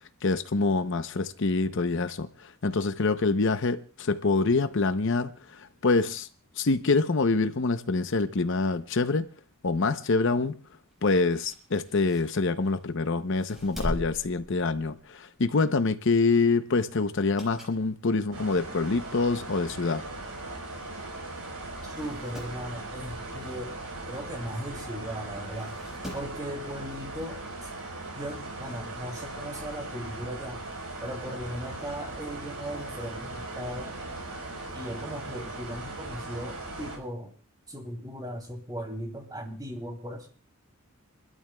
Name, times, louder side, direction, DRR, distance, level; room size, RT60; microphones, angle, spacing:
voice 1, 0.2-6.3 6.6-9.3 9.6-10.6 11.0-20.0, left 3 dB, 60° left, 0.7 m, -26 dB
sound 1, 10.9-12.8 13.3-15.2 15.6-15.8 17.1-17.9 18.3-18.4 19.3-19.4 19.7-19.8 19.9-20.0 20.9-21.1 21.4-21.5 21.9-22.6 24.4-24.5 25.6-26.4 27.7-27.8, equal, ahead, 4.8 m, -40 dB
sound 2, 18.3-37.0, right 2 dB, 80° right, 4.7 m, -39 dB
voice 2, 21.8-23.7 24.1-25.7 26.1-27.7 28.1-30.6 31.0-34.0 34.7-37.3 37.7-40.3, equal, 20° right, 2.7 m, -38 dB
29.0 x 12.5 x 2.3 m
head